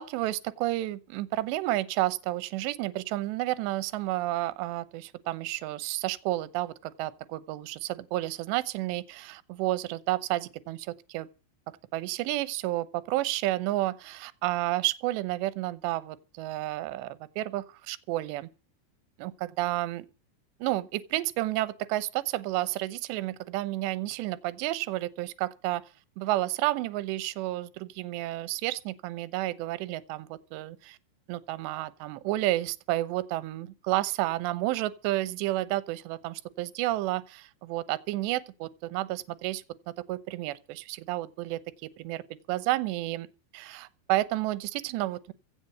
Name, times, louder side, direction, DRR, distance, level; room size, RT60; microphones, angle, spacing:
voice 1, 0.0-11.3 11.9-18.5 19.2-20.1 20.6-25.8 26.2-31.0 31.3-39.6 40.1-42.2 42.5-43.3 43.5-45.3, right 16 dB, 80° right, 2.9 m, -31 dB
16.0 x 7.1 x 8.0 m
omnidirectional pair, 5.3 m